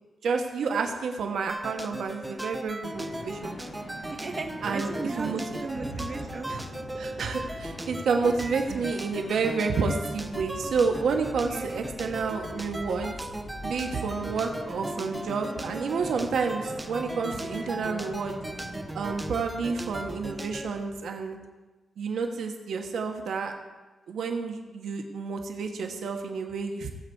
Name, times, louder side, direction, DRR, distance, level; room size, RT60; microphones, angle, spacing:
voice 1, 0.2-3.6 4.6-5.6 5.9-6.1 6.5-6.6 7.0-13.1 13.6-18.3 18.9-21.4 22.0-23.5 24.1-26.9, right 5 dB, 75° right, 3 dB, 1.4 m, -30 dB
sound 1, 1.5-20.7, right 1 dB, 10° right, 0.7 m, -38 dB
sound 2, 2.9-21.4, left 1 dB, 70° left, 2.7 m, -43 dB
voice 2, 4.1-6.5 11.5-11.8, right 3 dB, 35° right, 5 dB, 1.1 m, -36 dB
16.5 x 8.0 x 4.6 m, 1.2 s
wide cardioid pair, 145°, 0 cm